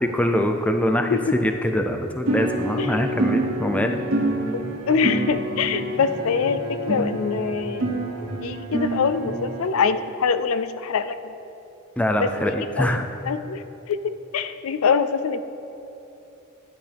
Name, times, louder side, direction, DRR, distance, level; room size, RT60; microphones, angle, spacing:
voice 1, 0.0-4.0 12.0-13.1, left 1 dB, 5° left, 5 dB, 0.5 m, -23 dB
sound 1, 2.3-9.7, right 2 dB, 90° right, 1.7 m, -27 dB
voice 2, 4.9-6.6 6.9-7.9 8.4-11.3 12.2-14.0 14.3-15.4, left 5 dB, 80° left, 11 dB, 0.4 m, -24 dB
13.0 x 10.5 x 3.4 m, 2.9 s
head